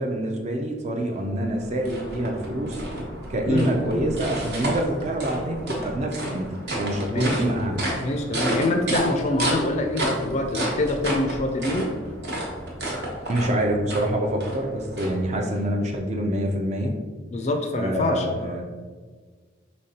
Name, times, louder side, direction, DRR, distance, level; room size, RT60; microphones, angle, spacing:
voice 1, 0.0-2.8 3.3-6.5 6.8-7.9 13.3-16.9 17.7-18.6, right 1 dB, 35° right, 2 dB, 0.4 m, -26 dB
sound 1, 1.2-15.6, right 1 dB, 60° right, 1.0 m, -31 dB
voice 2, 7.1-11.9 17.3-18.6, left 2 dB, 35° left, 5 dB, 0.4 m, -25 dB
5.2 x 3.2 x 2.8 m, 1.5 s
head